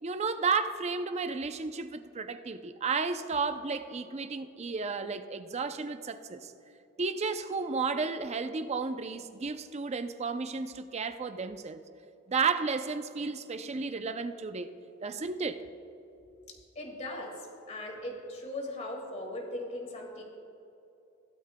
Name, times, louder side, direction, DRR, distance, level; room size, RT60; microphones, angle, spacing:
voice 1, 0.0-6.5 7.0-11.8 12.3-14.7 15.0-15.6, right 4 dB, 35° right, 10 dB, 0.5 m, -33 dB
voice 2, 16.5-20.2, left 1 dB, 35° left, 1 dB, 1.9 m, -39 dB
16.5 x 12.0 x 2.2 m, 2.8 s
head